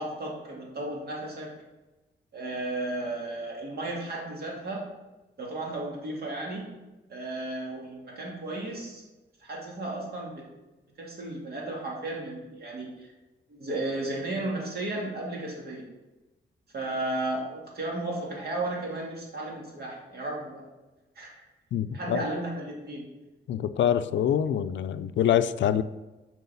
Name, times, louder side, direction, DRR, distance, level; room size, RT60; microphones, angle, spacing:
voice 1, 0.0-1.5 2.3-4.9 5.4-6.7 7.1-9.0 9.4-10.5 11.0-13.1 13.5-15.9 16.7-20.7 21.2-21.4 21.9-23.0, right 2 dB, 55° right, -2 dB, 2.4 m, -34 dB
voice 2, 21.7-22.2 23.5-25.8, left 9 dB, 80° left, 12 dB, 0.4 m, -25 dB
7.9 x 4.7 x 7.0 m, 1.1 s
wide cardioid pair, 165°, 19 cm